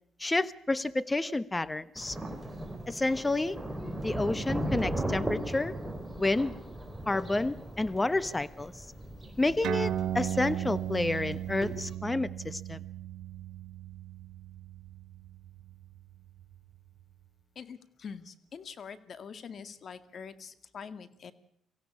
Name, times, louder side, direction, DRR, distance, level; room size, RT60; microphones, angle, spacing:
voice 1, 0.2-2.2 2.9-3.6 4.0-5.7 6.2-6.5 7.1-8.7 9.4-12.8, left 2 dB, 15° left, 16 dB, 1.2 m, -29 dB
Thunder, 2.0-11.9, right 1 dB, 5° right, 4.7 m, -38 dB
sound 1, 9.6-16.6, right 11 dB, 75° right, 2.2 m, -36 dB
voice 2, 17.6-21.3, left 6 dB, 55° left, 12 dB, 2.0 m, -44 dB
24.5 x 16.0 x 8.6 m, 0.71 s
cardioid pair, 90°, 0 cm